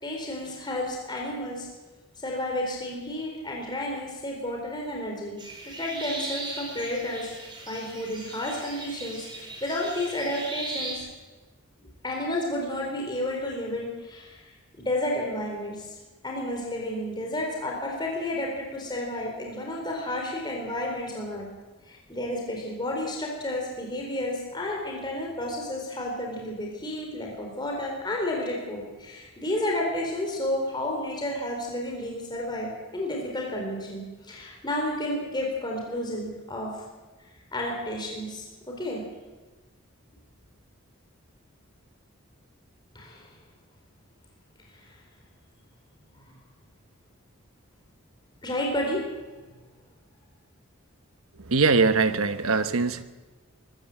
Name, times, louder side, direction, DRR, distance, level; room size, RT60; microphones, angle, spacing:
voice 1, 0.0-1.7 2.2-7.3 7.7-11.1 12.0-14.5 14.8-16.0 16.2-21.5 21.8-36.7 37.5-39.0 42.9-43.3 44.7-45.0 46.2-46.3 48.4-49.0 49.4-49.6, left 1 dB, 20° left, -1 dB, 4.1 m, -31 dB
sound 1, 5.4-11.0, right 2 dB, 20° right, 4.6 m, -38 dB
voice 2, 51.5-53.0, right 4 dB, 85° right, 10 dB, 1.2 m, -22 dB
24.0 x 14.5 x 7.8 m, 1.2 s
head